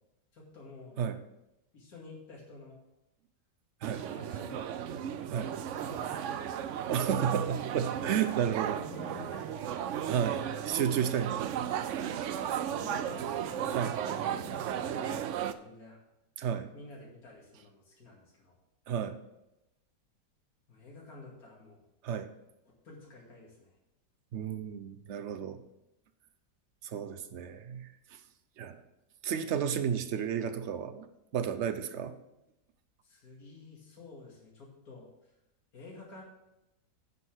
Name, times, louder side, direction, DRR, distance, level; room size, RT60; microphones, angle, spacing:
voice 1, 0.3-1.0 1.7-2.8 4.1-5.1 5.5-6.9 8.7-9.8 12.0-12.5 12.8-16.0 16.7-18.5 20.7-21.8 22.6-23.7 33.0-35.1 35.7-36.2, left 3 dB, 55° left, -3 dB, 2.7 m, -50 dB
sound 1, 3.8-15.5, right 9 dB, 85° right, 0.6 m, -35 dB
voice 2, 6.9-8.8 10.1-11.7 13.7-13.9 16.4-16.7 18.9-19.2 22.0-22.3 24.3-25.6 26.8-27.9 28.6-28.8 29.2-31.1 31.3-32.2, right 8 dB, 55° right, 9 dB, 0.8 m, -32 dB
9.7 x 5.6 x 6.4 m, 0.90 s
omnidirectional pair, 1.9 m